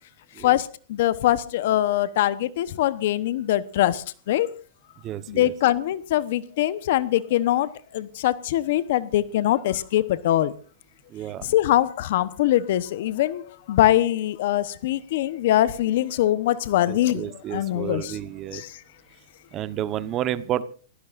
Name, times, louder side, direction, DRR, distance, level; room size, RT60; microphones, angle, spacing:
voice 1, 0.4-4.5 5.3-7.7 7.9-10.5 11.4-13.4 13.7-18.2 18.5-18.7, left 13 dB, 65° left, 1.0 m, -23 dB
voice 2, 5.0-5.5 11.1-11.5 16.9-18.6 19.5-20.6, right 12 dB, 30° right, 1.1 m, -31 dB
28.0 x 16.5 x 2.6 m
hypercardioid pair, 130°, 0 cm